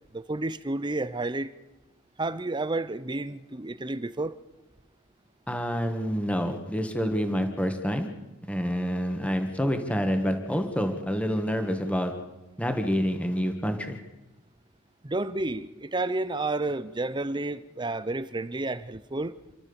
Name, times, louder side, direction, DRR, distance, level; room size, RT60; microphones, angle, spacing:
voice 1, 0.1-1.5 2.2-4.4 15.0-19.4, right 2 dB, 20° right, 0.7 m, -31 dB
voice 2, 5.5-8.1 8.5-12.1 12.6-14.0, equal, 5° left, 1.8 m, -27 dB
29.0 x 13.0 x 7.2 m
head